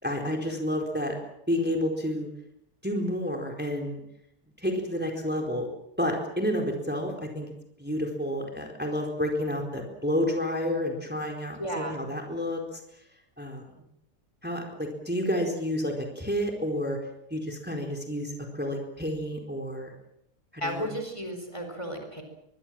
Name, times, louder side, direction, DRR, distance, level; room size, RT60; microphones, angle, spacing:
voice 1, 0.0-1.2 1.5-2.3 2.8-4.0 4.6-5.7 6.0-7.5 7.8-12.8 13.4-13.6 14.4-17.0 17.3-19.9 20.5-20.9, equal, 5° right, 2 dB, 4.2 m, -30 dB
voice 2, 11.6-12.0 20.6-22.2, equal, 15° left, 4 dB, 4.5 m, -34 dB
24.0 x 22.5 x 7.6 m, 0.77 s
omnidirectional pair, 1.7 m